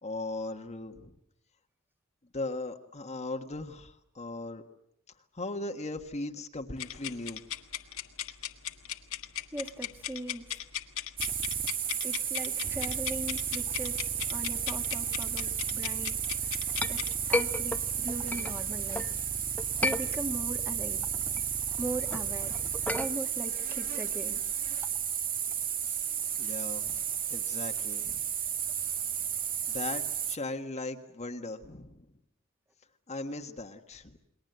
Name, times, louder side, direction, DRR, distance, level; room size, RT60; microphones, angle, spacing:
voice 1, 0.0-1.2 2.3-4.6 5.3-7.4 25.8-26.0 26.4-27.0 27.3-28.2 29.7-32.1 33.1-34.2, left 2 dB, 30° left, 5 dB, 1.4 m, -38 dB
sound 1, 6.8-17.1, left 11 dB, 65° left, 1.5 m, -38 dB
voice 2, 9.5-10.6 12.0-16.2 16.8-19.1 19.8-21.0 21.7-22.6 22.9-24.4, right 1 dB, 10° right, 4 dB, 1.8 m, -39 dB
sound 2, 11.2-30.4, right 8 dB, 40° right, 1.6 m, -33 dB
Chink clink, 16.3-19.1 19.6-20.6 21.0-25.0, left 1 dB, 5° left, 0.9 m, -35 dB
29.5 x 21.5 x 8.0 m, 0.79 s
head